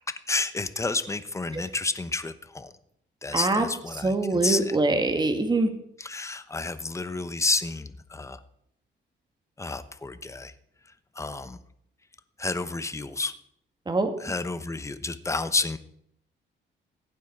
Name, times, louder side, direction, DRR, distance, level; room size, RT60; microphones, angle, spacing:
voice 1, 0.1-2.7 3.2-4.8 6.0-8.4 9.6-10.5 11.1-11.6 12.4-13.3 14.2-15.8, left 3 dB, 15° left, 12 dB, 0.9 m, -30 dB
voice 2, 3.3-3.6 4.0-5.7 13.9-14.1, right 2 dB, 20° right, 6 dB, 2.3 m, -24 dB
15.5 x 10.0 x 4.8 m, 0.72 s
cardioid pair, 90°, 20 cm